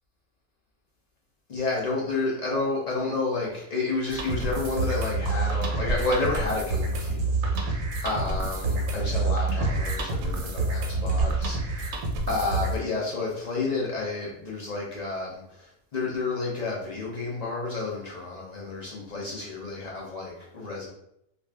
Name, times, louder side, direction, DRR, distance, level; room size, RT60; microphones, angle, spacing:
voice 1, 1.5-11.9 12.3-20.9, left 3 dB, 50° left, -5 dB, 0.5 m, -30 dB
sound 1, 4.1-12.8, right 2 dB, 80° right, 1.0 m, -27 dB
2.5 x 2.3 x 3.2 m, 0.79 s
omnidirectional pair, 1.4 m